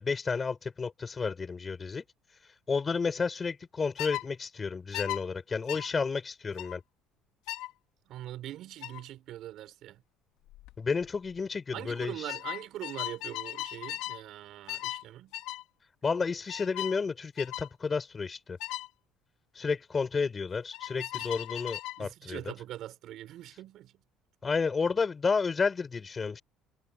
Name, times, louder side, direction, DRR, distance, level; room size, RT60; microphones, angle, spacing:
voice 1, 0.0-2.0 2.7-6.8 10.8-12.3 16.0-18.6 19.5-22.5 24.4-26.4, left 5 dB, 25° left, 6.5 m, -31 dB
sound 1, 4.0-4.2 4.9-5.2 5.7-5.9 6.6-6.8 7.5-7.7 8.8-9.0 10.5-10.7 11.0-11.4 12.3-14.2 14.7-15.0 15.3-15.6 16.5-17.0 17.4-17.7 18.6-18.9 20.7-22.0, left 17 dB, 80° left, 3.2 m, -37 dB
voice 2, 8.1-10.0 11.7-15.3 21.0-21.3 22.0-24.0, right 13 dB, 60° right, 5.6 m, -42 dB
cardioid pair, 125°, 0 cm